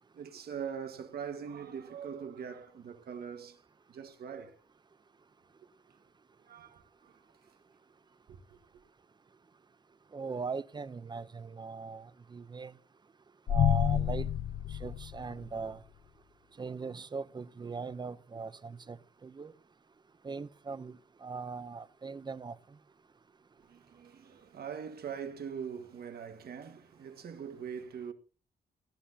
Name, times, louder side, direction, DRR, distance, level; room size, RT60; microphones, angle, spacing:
voice 1, 0.1-3.6 3.9-4.6 6.5-7.1 8.3-8.6 23.6-28.1, right 7 dB, 70° right, 1.7 m, -42 dB
voice 2, 10.1-12.7 13.5-14.3 14.7-15.8 16.6-19.5 20.2-22.8, right 4 dB, 25° right, 0.6 m, -40 dB
sound 1, 13.5-15.7, left 10 dB, 65° left, 0.6 m, -29 dB
18.5 x 12.0 x 2.8 m
cardioid pair, 115°, 16 cm